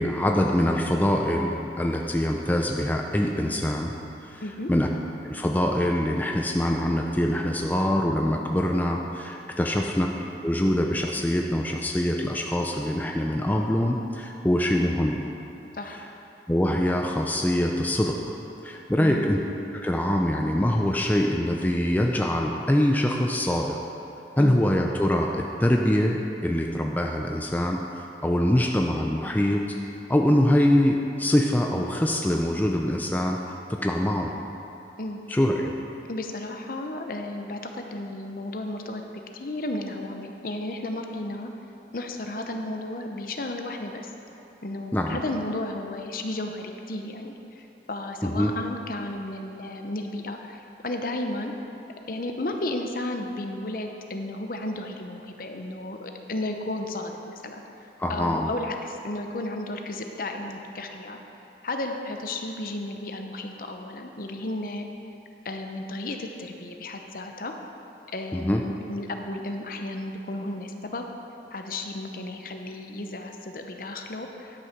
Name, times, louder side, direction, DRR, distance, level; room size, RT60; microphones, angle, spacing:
voice 1, 0.0-3.9 4.2-4.4 4.7-4.9 5.2-10.1 10.4-15.2 15.9-16.0 16.5-18.4 18.6-19.4 19.7-23.8 24.4-29.6 30.1-34.3 35.3-35.7 44.9-45.2 48.2-48.5 58.0-58.5 68.3-68.6, left 1 dB, 10° left, 1 dB, 0.4 m, -24 dB
voice 2, 19.0-19.4 24.4-24.6 35.0-35.2 36.1-39.0 39.3-41.5 41.9-44.1 44.6-51.5 52.1-57.6 58.1-61.2 61.6-64.9 65.4-67.5 68.1-71.0 71.5-74.6, left 2 dB, 50° left, 4 dB, 0.7 m, -33 dB
11.0 x 6.4 x 5.8 m, 2.9 s
head